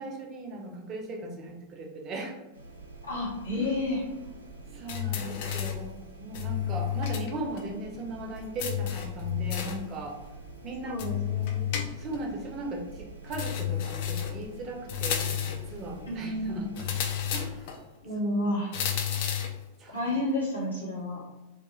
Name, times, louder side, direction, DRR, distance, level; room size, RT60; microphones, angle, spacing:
voice 1, 0.0-2.4 3.5-3.7 4.7-10.1 10.6-11.0 11.9-16.9 17.3-17.7 18.3-18.5 19.8-20.0, right 2 dB, 30° right, 1 dB, 0.5 m, -38 dB
sound 1, 2.5-17.5, right 2 dB, 80° right, 0.5 m, -47 dB
voice 2, 3.0-4.0 10.8-11.8 16.1-16.7 18.0-18.7 19.9-21.2, left 1 dB, 80° left, -5 dB, 0.9 m, -31 dB
sound 2, 4.9-5.9 6.3-7.3 7.6-7.7 8.6-9.9 11.0-12.3 13.3-14.4 14.9-15.7 16.8-17.8 18.7-19.6, left 10 dB, 50° left, 0.3 m, -31 dB
2.3 x 2.3 x 3.0 m, 1.0 s
figure-of-eight pair, 90°, 0 cm